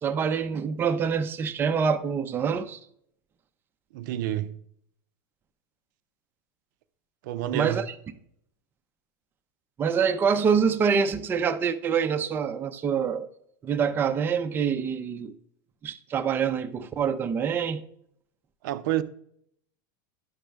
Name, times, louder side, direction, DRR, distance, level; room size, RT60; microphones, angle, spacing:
voice 1, 0.0-2.8 7.5-7.8 9.8-13.3 13.6-15.3 15.8-17.8, right 6 dB, 20° right, 0.5 m, -25 dB
voice 2, 3.9-4.5 7.2-7.9 18.6-19.0, right 12 dB, 70° right, 0.5 m, -28 dB
11.0 x 5.2 x 3.3 m
supercardioid pair, 150°, 10 cm